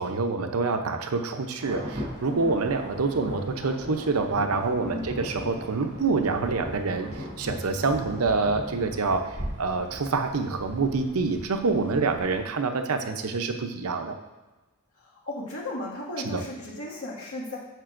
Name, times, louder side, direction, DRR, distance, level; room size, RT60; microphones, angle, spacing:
voice 1, 0.0-14.1 16.2-16.4, right 4 dB, 90° right, 6 dB, 0.7 m, -27 dB
Insect / Thunder / Rain, 1.6-12.4, equal, 50° right, 2.5 m, -39 dB
voice 2, 4.8-5.2 11.7-12.0 15.0-17.6, left 1 dB, 85° left, -4 dB, 2.0 m, -36 dB
9.0 x 6.6 x 2.6 m, 1.2 s
head